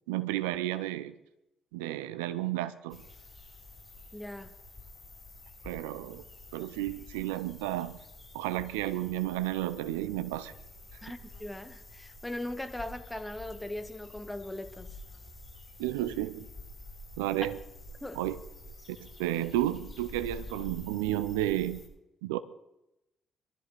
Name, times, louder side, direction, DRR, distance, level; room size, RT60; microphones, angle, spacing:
voice 1, 0.1-1.2 1.7-3.0 5.6-6.2 6.5-8.0 8.3-10.5 15.8-16.5 17.2-17.6 18.1-18.4 19.0-21.8 22.2-22.4, right 14 dB, 80° right, 0.6 m, -32 dB
sound 1, 2.9-21.9, left 2 dB, 30° left, 7.5 m, -49 dB
voice 2, 4.1-4.5 11.0-14.9 18.0-18.2, left 1 dB, 10° left, 1.6 m, -39 dB
22.5 x 13.0 x 4.2 m
hypercardioid pair, 45°, 0 cm